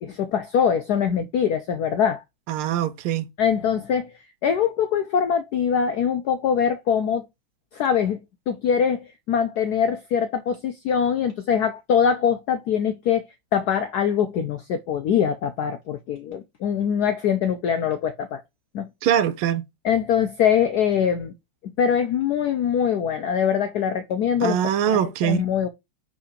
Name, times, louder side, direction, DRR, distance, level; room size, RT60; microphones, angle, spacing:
voice 1, 0.0-2.2 3.4-4.1 4.4-7.2 7.7-8.2 8.5-13.2 13.5-18.4 18.7-18.9 19.8-21.3 21.8-24.6 24.9-25.7, left 7 dB, 80° left, 0.9 m, -23 dB
voice 2, 2.5-3.3 19.0-19.6 24.4-25.4, right 10 dB, 85° right, 1.5 m, -22 dB
5.1 x 3.8 x 5.0 m
omnidirectional pair, 2.3 m